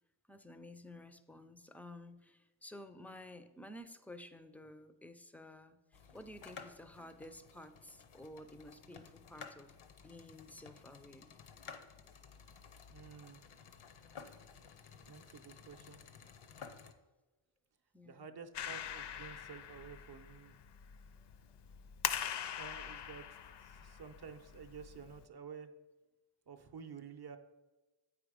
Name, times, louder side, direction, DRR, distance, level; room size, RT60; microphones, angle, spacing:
voice 1, 0.3-9.8 10.0-11.3 17.9-18.3 21.5-21.6, left 1 dB, 5° left, 10 dB, 0.3 m, -53 dB
sound 1, 5.9-16.9, left 6 dB, 85° left, 0.8 m, -55 dB
voice 2, 12.9-13.4 15.1-16.0 18.0-20.6 22.6-23.3 23.6-25.7 26.5-27.4, right 6 dB, 50° right, 7 dB, 0.6 m, -51 dB
Clapping, 18.5-25.3, left 9 dB, 60° left, 0.5 m, -43 dB
8.6 x 5.0 x 4.9 m, 1.2 s
wide cardioid pair, 120°, 49 cm